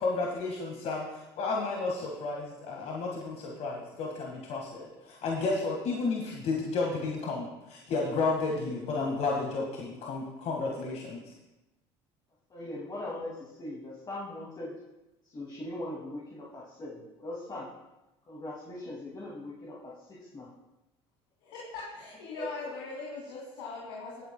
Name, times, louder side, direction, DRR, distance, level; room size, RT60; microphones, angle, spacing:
voice 1, 0.0-11.2, left 3 dB, 55° left, -1 dB, 1.7 m, -32 dB
voice 2, 12.5-14.7 15.3-17.7 18.3-20.5 22.4-22.7, left 1 dB, 30° left, -5 dB, 2.3 m, -40 dB
voice 3, 21.4-24.2, left 3 dB, 85° left, -5 dB, 2.5 m, -40 dB
17.5 x 9.0 x 2.2 m, 1.0 s
hypercardioid pair, 80°, 13 cm